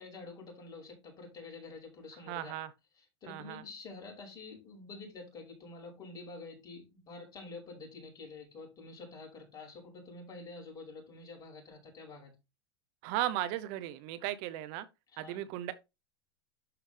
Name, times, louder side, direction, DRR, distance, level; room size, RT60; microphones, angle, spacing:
voice 1, 0.0-2.5 3.0-12.3 15.1-15.4, left 3 dB, 30° left, 5.5 m, -48 dB
voice 2, 2.3-2.7 3.3-3.6 13.0-14.9 15.2-15.7, right 13 dB, 55° right, 0.9 m, -36 dB
11.5 x 4.8 x 3.4 m
hypercardioid pair, 110°, 13 cm